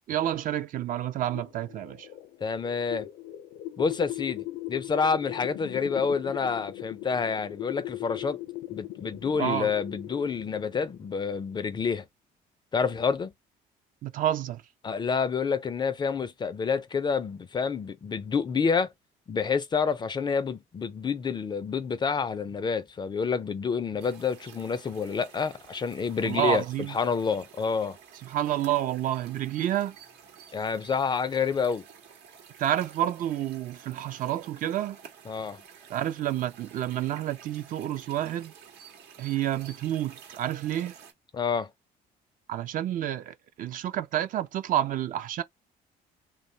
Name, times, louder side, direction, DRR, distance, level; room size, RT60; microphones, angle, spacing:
voice 1, 0.1-2.1 9.4-9.7 14.0-14.6 26.2-27.0 28.2-30.0 32.6-35.0 35.9-38.5 39.2-41.0 42.5-45.4, right 12 dB, 55° right, 0.4 m, -29 dB
sound 1, 1.2-11.5, left 16 dB, 75° left, 0.6 m, -39 dB
voice 2, 2.4-3.1 3.8-8.4 8.7-12.0 12.7-13.3 14.8-18.9 19.3-26.6 26.9-28.0 30.5-31.8 35.3-35.6 41.3-41.7, left 5 dB, 25° left, 0.4 m, -28 dB
sound 2, 24.0-41.1, right 7 dB, 85° right, 0.9 m, -51 dB
2.9 x 2.1 x 2.6 m
cardioid pair, 110°, 17 cm